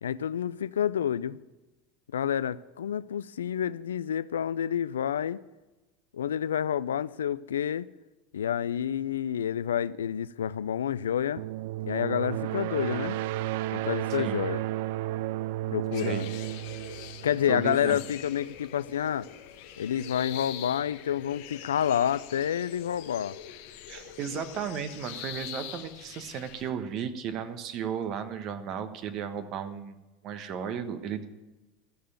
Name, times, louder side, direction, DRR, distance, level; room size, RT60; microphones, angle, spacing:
voice 1, 0.0-1.4 2.1-5.4 6.1-7.9 8.3-11.4 11.9-13.2 13.7-14.6 15.7-16.3 17.2-19.3 19.8-23.4, left 9 dB, 80° left, 0.3 m, -29 dB
sound 1, 11.4-18.0, right 15 dB, 65° right, 0.3 m, -33 dB
sound 2, 15.9-26.7, left 10 dB, 65° left, 1.0 m, -44 dB
voice 2, 16.0-16.3 17.5-18.0 23.9-29.9 30.2-31.3, right 8 dB, 50° right, 1.3 m, -34 dB
14.0 x 6.6 x 9.1 m
hypercardioid pair, 80°, 0 cm